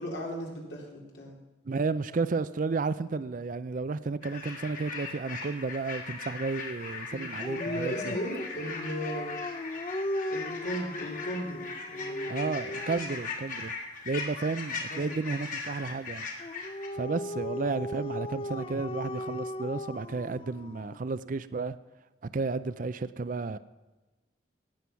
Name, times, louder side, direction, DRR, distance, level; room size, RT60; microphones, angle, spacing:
voice 1, 0.0-1.3 7.1-7.2 7.5-9.4 10.3-12.5 14.9-15.4, right 1 dB, 80° left, -2 dB, 3.7 m, -36 dB
voice 2, 1.7-8.1 12.3-13.7 14.1-16.3 16.9-21.8 22.2-23.6, right 4 dB, 45° right, 15 dB, 0.4 m, -32 dB
sound 1, 4.2-16.9, left 4 dB, 50° left, 2.4 m, -39 dB
Dog, 7.4-13.2 16.4-21.0, left 1 dB, 30° left, 0.4 m, -37 dB
18.0 x 7.8 x 5.8 m, 1.1 s
head